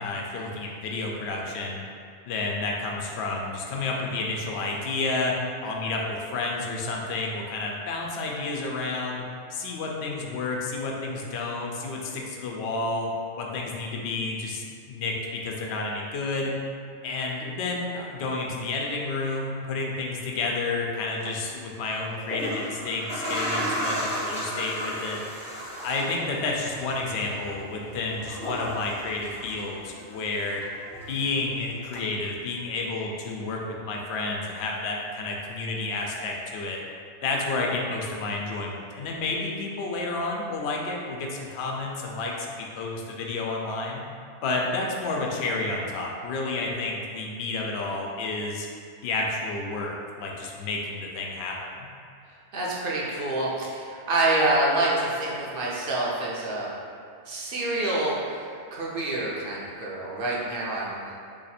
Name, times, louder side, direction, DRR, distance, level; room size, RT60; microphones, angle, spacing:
voice 1, 0.0-1.8 2.3-5.3 5.6-9.2 9.5-16.6 17.0-25.2 25.8-30.6 31.1-36.8 37.2-42.5 42.7-44.0 44.4-48.7 49.0-51.9, left 3 dB, 70° left, -1 dB, 0.8 m, -30 dB
sound 1, 21.2-21.3 22.1-30.1 30.4-31.5 31.9-32.0, equal, 5° left, 0.5 m, -34 dB
voice 2, 52.5-56.7 57.3-61.0, right 2 dB, 55° right, -5 dB, 0.8 m, -27 dB
2.9 x 2.4 x 4.1 m, 2.3 s
omnidirectional pair, 1.2 m